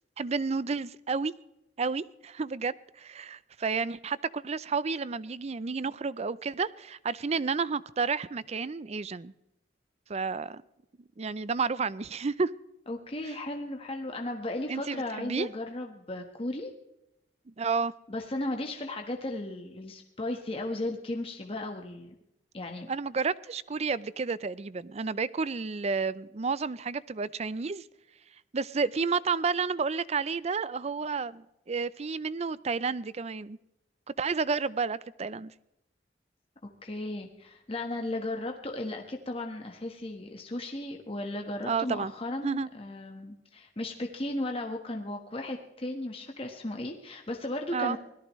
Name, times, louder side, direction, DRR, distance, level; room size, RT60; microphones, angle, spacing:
voice 1, 0.2-1.3 1.8-9.3 10.1-10.6 11.2-12.5 14.7-15.5 17.6-17.9 22.9-27.8 28.5-33.6 34.2-35.5 41.7-42.1 42.4-42.7 47.7-48.0, right 5 dB, 40° right, 18 dB, 0.5 m, -31 dB
voice 2, 12.9-16.7 18.1-22.1 22.5-22.9 36.8-48.0, left 1 dB, 35° left, 3 dB, 1.3 m, -35 dB
25.0 x 17.5 x 3.2 m, 0.87 s
head